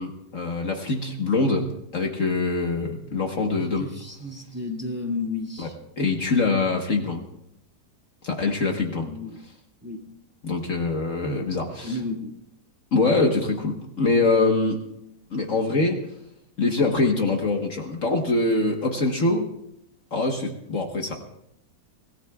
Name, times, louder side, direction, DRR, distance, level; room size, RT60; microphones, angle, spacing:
voice 1, 0.0-3.9 5.6-5.7 6.0-7.2 8.2-9.1 10.4-11.9 12.9-14.8 15.3-16.0 16.6-19.5 20.1-21.1, left 3 dB, 50° left, 2 dB, 1.6 m, -24 dB
voice 2, 3.6-5.8 8.9-9.4 9.8-10.0 11.8-12.3, left 3 dB, 10° right, -1 dB, 2.3 m, -32 dB
25.0 x 17.5 x 2.4 m, 0.78 s
omnidirectional pair, 1.7 m